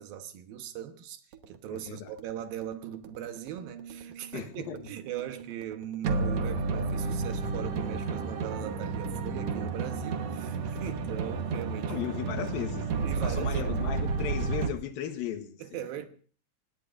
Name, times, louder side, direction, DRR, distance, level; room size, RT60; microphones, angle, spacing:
voice 1, 0.0-11.9 13.0-13.8 15.6-16.1, right 11 dB, 75° right, 2.8 m, -40 dB
sound 1, 1.3-14.7, right 4 dB, 60° right, 1.8 m, -32 dB
voice 2, 1.7-2.1 4.3-4.9 11.9-12.9 13.2-15.9, left 9 dB, 75° left, 2.9 m, -36 dB
25.5 x 19.5 x 2.5 m
omnidirectional pair, 4.3 m